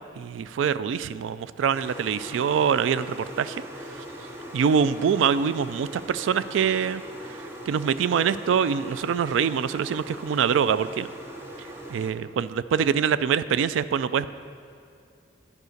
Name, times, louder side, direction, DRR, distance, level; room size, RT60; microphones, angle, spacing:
voice 1, 0.2-3.6 3.9-4.0 4.5-7.0 7.3-7.4 7.7-11.1 11.9-14.3, right 7 dB, 85° right, 15 dB, 0.3 m, -24 dB
sound 1, 1.7-12.1, equal, 10° right, 0.6 m, -41 dB
11.0 x 4.8 x 6.4 m, 2.4 s
head